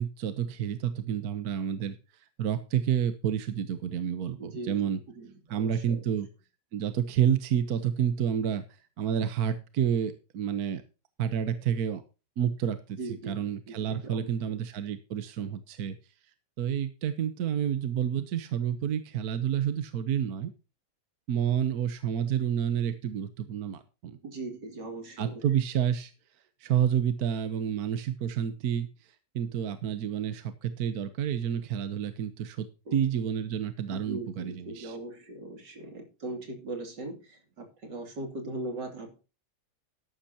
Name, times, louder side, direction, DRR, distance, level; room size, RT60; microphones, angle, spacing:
voice 1, 0.0-5.0 5.5-6.3 6.7-8.6 9.0-10.8 11.2-12.0 12.4-13.0 13.3-16.0 16.6-20.5 21.3-24.2 25.2-26.1 26.6-35.0, right 9 dB, 65° right, 11 dB, 1.4 m, -29 dB
voice 2, 4.4-6.0 13.0-14.6 24.2-25.4 32.9-33.0 33.9-39.2, right 2 dB, 85° right, 4 dB, 3.5 m, -40 dB
13.0 x 12.0 x 2.9 m, 0.31 s
omnidirectional pair, 1.8 m